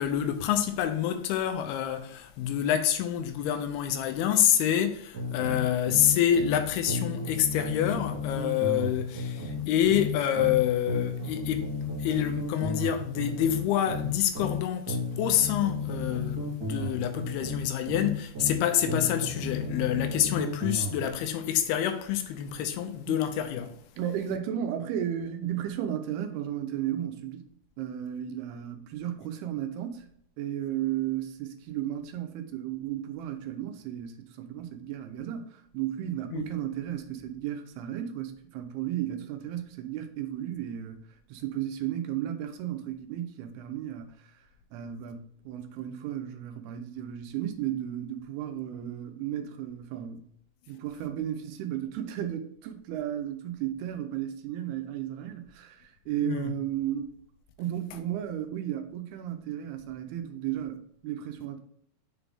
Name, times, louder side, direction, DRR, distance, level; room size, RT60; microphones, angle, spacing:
voice 1, 0.0-11.7 12.0-23.8 36.3-36.4 56.2-56.5, left 10 dB, 85° left, 2.6 m, -27 dB
sound 1, 5.1-6.6 6.9-10.6 10.9-14.6 14.9-18.6 18.9-21.0, left 2 dB, 30° right, 2.0 m, -33 dB
voice 2, 24.0-27.5 27.8-30.1 30.4-41.0 41.3-44.3 44.7-50.3 50.7-57.1 57.6-61.6, right 11 dB, 85° right, 2.7 m, -34 dB
6.8 x 4.0 x 3.5 m
omnidirectional pair, 4.6 m